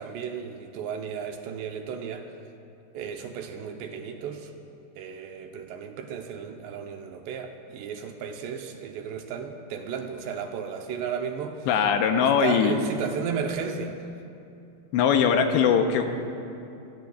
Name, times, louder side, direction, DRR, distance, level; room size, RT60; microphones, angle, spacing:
voice 1, 0.0-2.3 2.9-4.5 5.0-11.7 12.2-14.0, right 7 dB, 75° right, 4 dB, 2.8 m, -34 dB
voice 2, 11.7-12.8 14.9-16.1, left 7 dB, 80° left, 5 dB, 2.9 m, -21 dB
27.0 x 19.0 x 2.3 m, 2.7 s
omnidirectional pair, 5.3 m